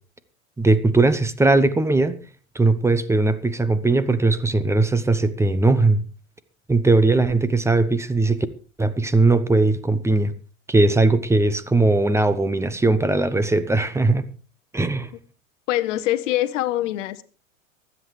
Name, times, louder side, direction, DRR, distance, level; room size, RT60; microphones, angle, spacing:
voice 1, 0.6-2.2 2.5-6.0 6.7-8.5 8.8-10.3 10.7-14.3 14.7-15.1, right 2 dB, 5° right, 0.8 m, -19 dB
voice 2, 15.7-17.2, left 14 dB, 65° left, 1.0 m, -23 dB
24.0 x 8.3 x 3.3 m
hypercardioid pair, 100°, 40 cm